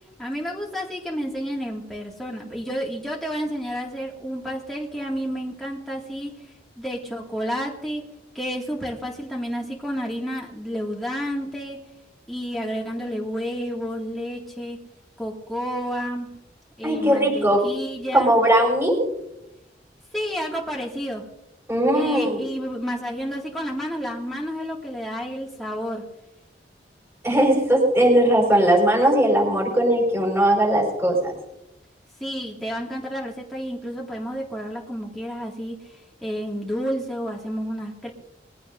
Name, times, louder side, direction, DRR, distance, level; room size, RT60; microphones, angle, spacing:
voice 1, 0.2-8.0 8.3-11.8 12.3-14.8 15.2-16.4 16.8-18.3 20.1-21.3 21.9-26.1 32.2-38.1, equal, ahead, -4 dB, 2.1 m, -30 dB
voice 2, 16.8-17.6 18.1-19.0 21.7-22.4 27.2-31.3, right 1 dB, 15° right, -1 dB, 4.9 m, -19 dB
22.0 x 15.5 x 2.6 m, 0.88 s
head